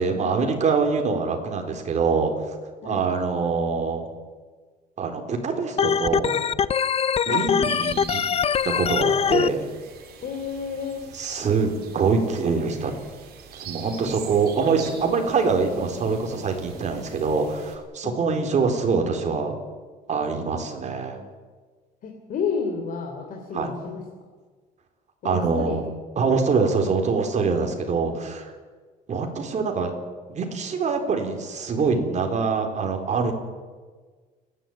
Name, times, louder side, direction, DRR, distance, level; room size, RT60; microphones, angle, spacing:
voice 1, 0.0-2.5 2.8-4.0 5.0-6.4 7.3-8.2 8.6-9.7 11.1-12.9 13.6-19.6 20.1-21.2 23.5-23.7 25.2-25.8 26.2-28.5 29.1-29.9 30.3-33.3, right 5 dB, 45° right, 3 dB, 4.3 m, -24 dB
Organ, 5.8-9.5, left 7 dB, 35° left, 0.6 m, -22 dB
voice 2, 7.3-7.6 10.2-11.0 18.0-18.4 22.0-24.0 25.2-25.8, left 5 dB, 55° left, 2 dB, 3.3 m, -31 dB
sound 1, 7.6-17.8, right 7 dB, 65° right, 3.8 m, -43 dB
29.5 x 11.5 x 9.1 m, 1.5 s
cardioid pair, 110°, 17 cm